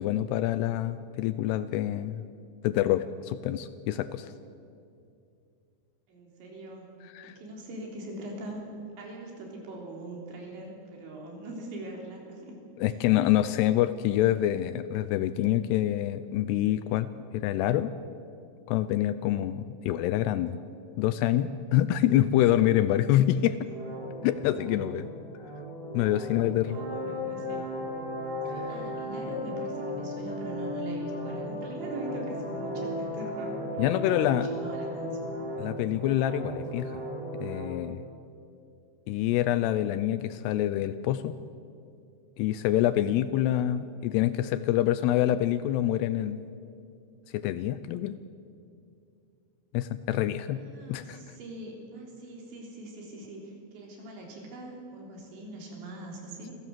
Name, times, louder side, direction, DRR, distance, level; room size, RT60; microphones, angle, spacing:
voice 1, 0.0-2.2 2.6-4.3 7.2-7.3 12.8-17.9 18.7-20.6 21.0-23.7 24.2-25.1 25.9-26.8 33.8-34.5 35.6-37.0 37.4-38.0 39.1-41.4 42.4-46.4 47.3-48.2 49.7-50.6 50.9-51.2, left 13 dB, 80° left, 13 dB, 2.5 m, -26 dB
voice 2, 6.1-6.9 7.2-8.6 9.0-13.1 26.7-27.7 28.2-35.2 50.5-56.5, right 1 dB, 80° right, 0 dB, 5.9 m, -42 dB
sound 1, 23.7-37.7, equal, 60° right, 5.9 m, -36 dB
26.5 x 15.5 x 7.6 m, 2.5 s
omnidirectional pair, 5.1 m